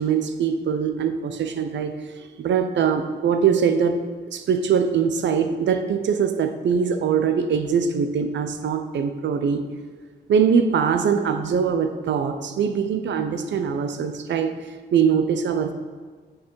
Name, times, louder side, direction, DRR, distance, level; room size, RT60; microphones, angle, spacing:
voice 1, 0.0-4.0 4.3-9.6 10.3-14.5 14.9-15.7, right 7 dB, 80° right, 8 dB, 0.6 m, -22 dB
8.5 x 4.8 x 4.6 m, 1.5 s
wide cardioid pair, 115°, 18 cm